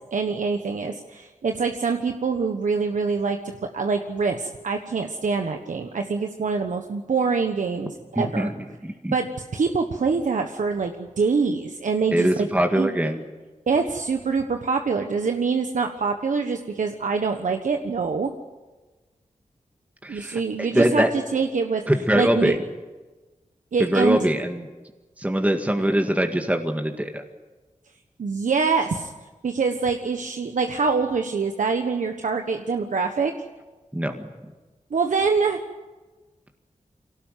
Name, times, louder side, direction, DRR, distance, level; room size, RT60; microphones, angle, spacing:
voice 1, 0.1-3.4 3.7-8.5 9.1-12.5 12.8-13.0 13.7-18.3 20.1-21.0 21.3-21.8 22.2-22.5 23.7-24.3 28.2-29.1 29.4-33.3 34.9-35.6, right 5 dB, 80° right, 5 dB, 1.3 m, -25 dB
voice 2, 8.1-8.5 8.8-9.1 12.1-13.2 20.0-21.1 21.9-22.6 23.8-24.7 25.2-27.2 33.9-34.1 34.4-34.5, right 1 dB, 10° right, 4 dB, 1.9 m, -22 dB
23.5 x 18.0 x 9.3 m, 1.3 s
wide cardioid pair, 65°, 13 cm